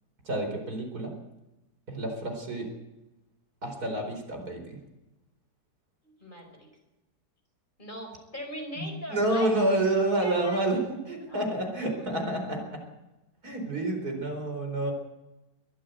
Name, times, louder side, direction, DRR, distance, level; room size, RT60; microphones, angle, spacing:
voice 1, 0.2-1.1 1.9-2.7 3.6-4.8 8.8-10.8 11.1-12.6 13.4-14.9, right 1 dB, 65° right, 3 dB, 4.9 m, -29 dB
voice 2, 6.0-6.7 7.8-9.5 10.2-10.6 11.1-11.4, equal, 30° left, 3 dB, 5.3 m, -40 dB
22.5 x 15.0 x 8.1 m, 1.0 s
omnidirectional pair, 1.8 m